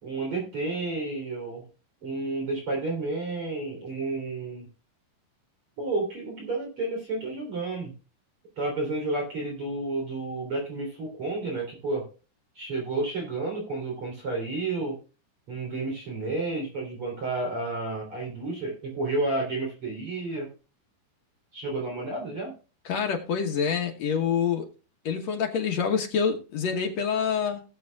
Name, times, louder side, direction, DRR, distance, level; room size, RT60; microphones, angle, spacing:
voice 1, 0.0-1.6 2.0-4.7 5.8-7.9 8.6-12.1 12.6-15.0 15.5-20.5 21.5-22.5, right 2 dB, 40° right, 4.0 m, -31 dB
voice 2, 22.9-24.7 25.1-27.6, left 6 dB, 60° left, 2.0 m, -26 dB
18.5 x 7.6 x 2.4 m
omnidirectional pair, 4.1 m